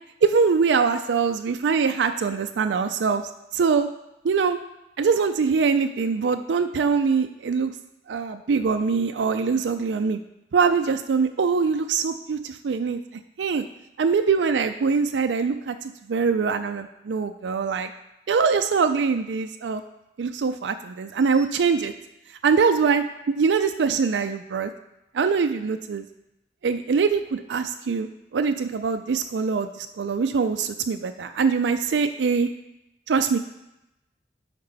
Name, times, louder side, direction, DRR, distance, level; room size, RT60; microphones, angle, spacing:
voice 1, 0.2-3.2 3.5-3.9 4.2-4.6 5.0-7.7 8.1-10.2 10.5-13.0 13.4-13.6 14.0-17.9 18.3-19.8 20.2-21.9 22.4-24.7 25.1-26.1 26.6-32.5 33.1-33.4, right 5 dB, 90° right, 8 dB, 0.4 m, -23 dB
9.5 x 5.3 x 4.0 m, 0.91 s
head